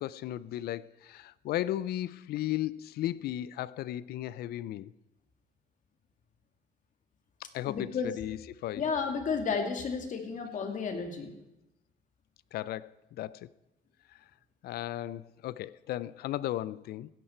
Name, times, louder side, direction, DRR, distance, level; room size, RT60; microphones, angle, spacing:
voice 1, 0.0-4.9 7.5-8.8 12.5-13.5 14.6-17.1, left 13 dB, 70° left, 0.5 m, -35 dB
voice 2, 7.6-8.1 8.7-11.4, left 5 dB, 50° left, 2.4 m, -32 dB
16.0 x 11.0 x 4.4 m
cardioid pair, 110°, 17 cm